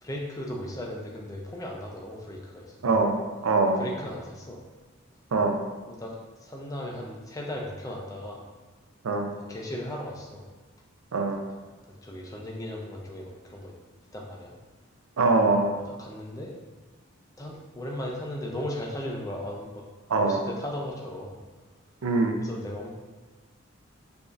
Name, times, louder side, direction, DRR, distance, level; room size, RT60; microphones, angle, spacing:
voice 1, 0.0-2.9 3.8-4.6 5.9-8.4 9.5-10.4 12.0-13.7 14.1-14.5 16.0-16.5 17.4-19.7 20.1-21.4 22.4-22.9, left 1 dB, 15° left, -1 dB, 0.4 m, -36 dB
voice 2, 2.8-3.1 3.4-3.8 5.3-5.5 9.0-9.3 11.1-11.4 15.2-15.8 20.1-20.4 22.0-22.4, right 3 dB, 90° right, 3 dB, 0.5 m, -23 dB
4.7 x 2.6 x 2.4 m, 1.3 s
head